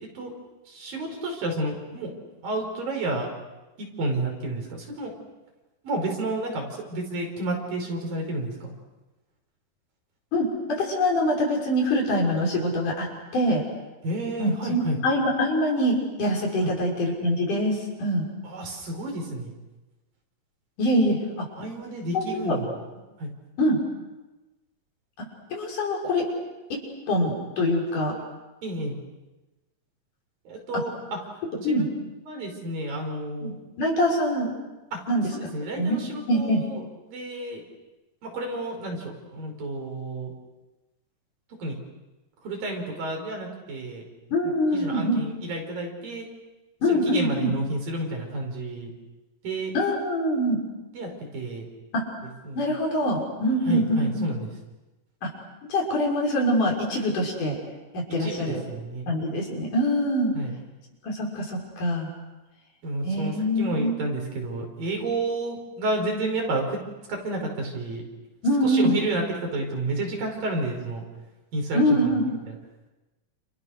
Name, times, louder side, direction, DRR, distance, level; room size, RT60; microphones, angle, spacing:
voice 1, 0.7-2.1 2.4-3.3 3.8-5.1 5.8-8.7 14.0-15.0 16.6-16.7 18.4-19.5 21.6-22.7 23.2-23.3 28.6-29.0 30.5-30.9 31.6-31.8 32.3-33.5 34.9-35.0 35.3-37.6 38.2-40.3 41.6-41.8 42.4-44.0 44.7-46.3 46.9-48.9 49.4-49.7 50.9-51.7 52.4-52.7 53.7-54.5 58.2-59.0 60.4-60.5 62.8-66.8 67.1-68.0 68.6-71.0 71.5-72.1 72.5-72.6, right 2 dB, 80° right, 2 dB, 6.9 m, -31 dB
voice 2, 10.3-13.1 13.3-13.6 14.4-18.2 20.8-21.5 22.1-22.6 23.6-23.8 25.2-26.3 26.7-26.8 27.1-28.1 31.6-31.9 33.4-34.5 35.1-35.3 35.8-36.0 36.3-36.6 44.3-45.3 46.8-47.5 49.7-50.6 51.9-52.1 52.6-54.3 55.2-55.3 55.7-57.6 57.9-58.6 59.1-60.3 61.0-62.1 63.0-64.0 68.4-69.0 71.7-72.4, equal, 65° left, -1 dB, 7.2 m, -24 dB
29.5 x 29.0 x 6.6 m, 1.1 s
omnidirectional pair, 4.0 m